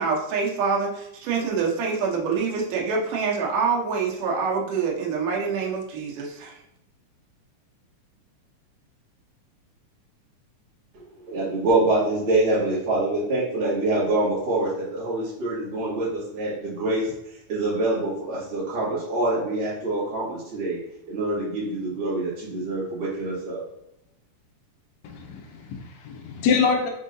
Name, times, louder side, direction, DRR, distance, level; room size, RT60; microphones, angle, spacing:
voice 1, 0.0-6.5, right 5 dB, 90° right, -2 dB, 2.5 m, -26 dB
voice 2, 10.9-17.1 17.5-20.8 21.1-23.6, right 2 dB, 45° right, -9 dB, 2.4 m, -25 dB
voice 3, 25.0-26.9, left 5 dB, 80° left, 2 dB, 1.7 m, -25 dB
5.4 x 3.8 x 2.6 m, 0.82 s
omnidirectional pair, 3.6 m